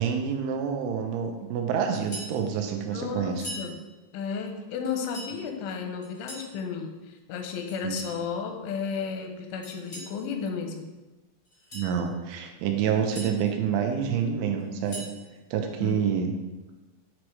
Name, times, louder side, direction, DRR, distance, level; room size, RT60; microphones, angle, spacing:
voice 1, 0.0-3.4 7.8-8.0 11.7-15.0 15.5-16.3, right 7 dB, 85° right, 4 dB, 3.0 m, -27 dB
sound 1, 1.9-2.4 3.3-3.7 4.8-5.3 6.0-6.5 7.7-8.2 9.6-10.1 11.5-11.9 12.8-13.3 14.6-15.2, equal, 70° left, 0.9 m, -41 dB
voice 2, 2.9-3.7 4.1-10.9 15.8-16.0, left 6 dB, 85° left, 4 dB, 3.2 m, -33 dB
8.6 x 3.1 x 4.7 m, 1.1 s
omnidirectional pair, 5.3 m